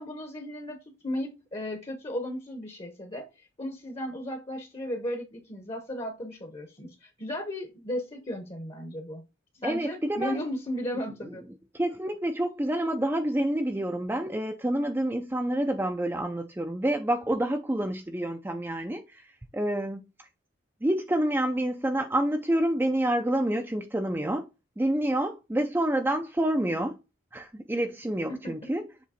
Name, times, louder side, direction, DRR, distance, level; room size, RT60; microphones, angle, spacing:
voice 1, 0.0-9.2 9.6-11.4 28.3-28.7, left 1 dB, 30° left, 0.9 m, -35 dB
voice 2, 9.6-10.4 11.3-11.4 11.7-20.0 20.8-24.5 24.8-27.0 27.3-28.9, right 1 dB, 10° right, 0.4 m, -28 dB
7.4 x 3.0 x 4.2 m
head